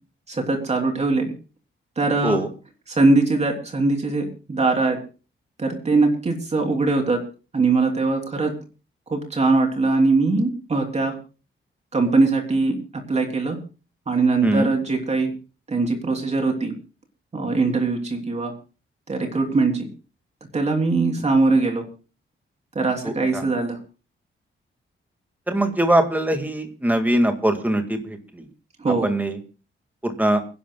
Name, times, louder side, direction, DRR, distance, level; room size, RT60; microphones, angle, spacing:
voice 1, 0.3-1.3 2.0-2.4 2.9-5.0 5.6-7.2 7.5-8.5 9.1-11.1 11.9-12.8 13.1-13.6 14.1-15.3 15.7-16.7 17.3-18.5 19.1-19.9 20.5-21.8 22.7-23.8 28.8-29.1, right 3 dB, 30° right, 3 dB, 3.1 m, -21 dB
voice 2, 23.0-23.5 25.5-28.4 29.0-29.4 30.0-30.4, right 1 dB, 10° right, 6 dB, 1.9 m, -22 dB
28.5 x 11.5 x 2.3 m, 0.33 s
wide cardioid pair, 175°, 21 cm